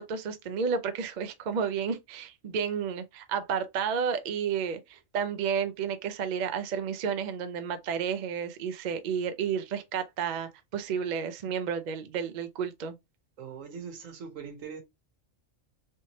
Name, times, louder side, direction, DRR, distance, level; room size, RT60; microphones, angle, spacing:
voice 1, 0.0-13.0, right 7 dB, 55° right, 0.5 m, -31 dB
voice 2, 13.4-14.8, right 6 dB, 80° right, 1.3 m, -41 dB
3.3 x 3.0 x 2.8 m
omnidirectional pair, 1.3 m